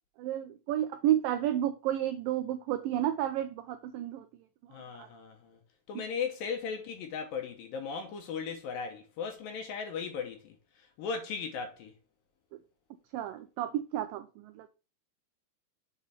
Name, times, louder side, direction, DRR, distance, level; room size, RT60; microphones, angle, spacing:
voice 1, 0.2-4.3 5.0-5.1 6.0-6.1 13.1-14.7, right 12 dB, 85° right, 2.0 m, -31 dB
voice 2, 4.7-5.6 5.9-11.9, left 6 dB, 75° left, 2.4 m, -37 dB
7.4 x 3.8 x 5.6 m
omnidirectional pair, 4.6 m